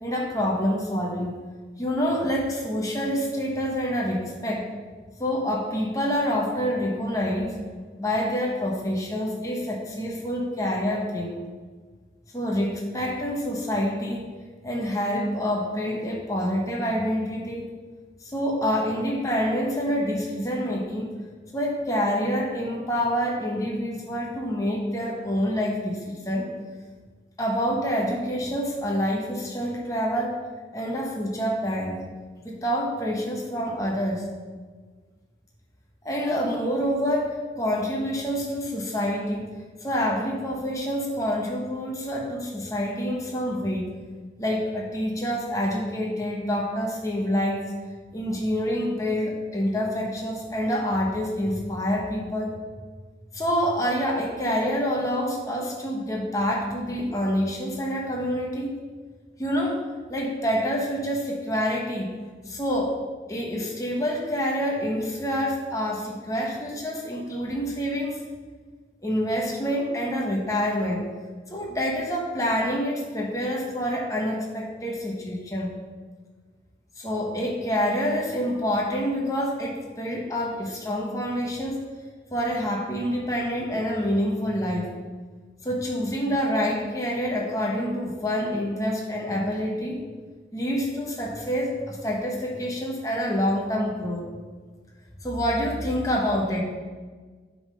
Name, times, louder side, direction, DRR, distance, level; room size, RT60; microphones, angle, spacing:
voice 1, 0.0-1.4 1.8-4.7 5.2-7.6 8.0-11.4 12.3-14.3 14.6-17.6 18.2-21.1 21.5-26.5 27.4-30.4 30.7-32.0 32.4-34.2 36.0-39.5 39.8-43.9 44.4-47.6 48.1-52.6 53.3-58.7 59.4-62.1 62.5-63.0 63.3-68.2 69.0-71.1 71.5-75.7 77.0-81.8 82.3-84.9 85.6-90.0 90.5-94.3 95.2-96.6, equal, 20° left, -2 dB, 1.1 m, -27 dB
8.7 x 3.9 x 5.1 m, 1.5 s
head